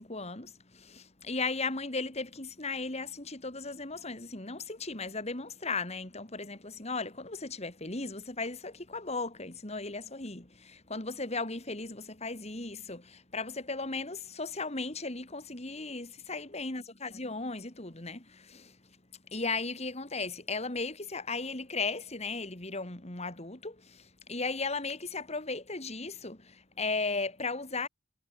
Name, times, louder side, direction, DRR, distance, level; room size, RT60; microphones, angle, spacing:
voice 1, 0.0-18.8 19.3-27.9, left 3 dB, 30° left, 2.6 m, -36 dB
head